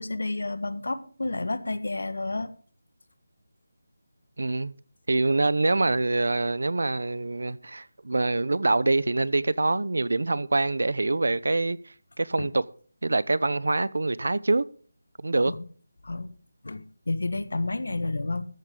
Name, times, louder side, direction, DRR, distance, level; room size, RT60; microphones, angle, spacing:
voice 1, 0.0-2.5 12.4-12.5 15.5-15.6 16.0-16.3 16.6-18.5, left 2 dB, 80° left, 1.5 m, -30 dB
voice 2, 4.4-4.7 5.1-12.6 13.0-14.6 15.2-15.5, right 2 dB, 75° right, 0.8 m, -25 dB
14.0 x 11.5 x 3.8 m
figure-of-eight pair, 175°, 0 cm